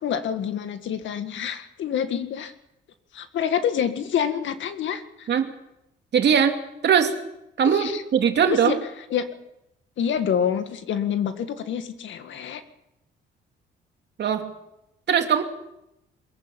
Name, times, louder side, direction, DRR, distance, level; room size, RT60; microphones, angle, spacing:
voice 1, 0.0-2.5 3.1-5.3 7.6-8.0 8.5-8.8 9.1-9.2 10.0-12.6, left 8 dB, 70° left, 9 dB, 1.9 m, -27 dB
voice 2, 6.1-6.6 6.8-7.1 7.6-8.8 14.2-14.4 15.1-15.4, right 7 dB, 60° right, 5 dB, 2.6 m, -20 dB
23.0 x 15.0 x 9.0 m, 0.85 s
cardioid pair, 90°, 20 cm